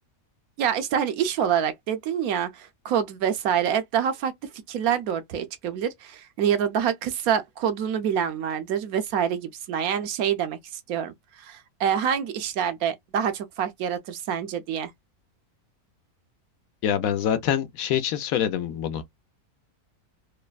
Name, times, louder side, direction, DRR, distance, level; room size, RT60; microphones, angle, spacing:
voice 1, 0.6-4.3 4.7-10.6 10.9-14.9, right 8 dB, 75° right, 1.0 m, -26 dB
voice 2, 16.8-19.0, left 9 dB, 70° left, 1.0 m, -25 dB
3.2 x 2.1 x 2.3 m
omnidirectional pair, 1.6 m